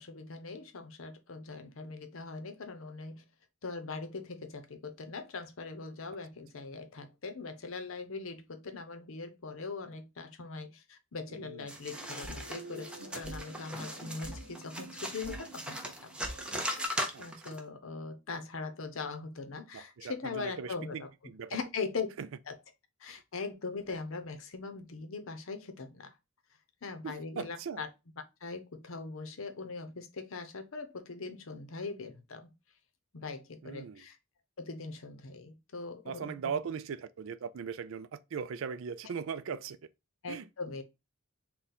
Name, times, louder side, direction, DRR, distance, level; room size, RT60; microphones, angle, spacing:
voice 1, 0.0-3.2 3.6-16.1 17.2-21.1 21.5-22.1 22.5-22.6 23.0-26.2 26.8-27.9 28.4-32.5 33.1-34.2 34.6-36.6 40.2-40.8, left 4 dB, 75° left, 0.7 m, -41 dB
voice 2, 11.3-11.7 17.1-17.2 19.7-21.6 22.2-22.3 23.1-23.2 27.0-27.8 33.6-34.0 36.1-39.8 40.3-40.5, right 6 dB, 70° right, 0.4 m, -39 dB
sound 1, 11.7-17.6, equal, 5° right, 0.5 m, -39 dB
sound 2, 11.9-16.9, right 1 dB, 40° right, 0.9 m, -47 dB
3.7 x 2.3 x 4.1 m
head